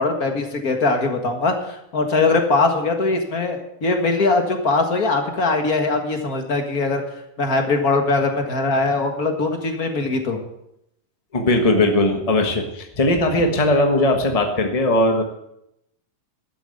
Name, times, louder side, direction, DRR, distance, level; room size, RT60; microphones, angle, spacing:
voice 1, 0.0-7.0 7.4-10.4, left 3 dB, 35° left, 4 dB, 1.6 m, -21 dB
voice 2, 11.3-15.2, left 1 dB, 65° left, 4 dB, 0.3 m, -19 dB
12.0 x 9.1 x 7.9 m, 0.80 s
omnidirectional pair, 3.4 m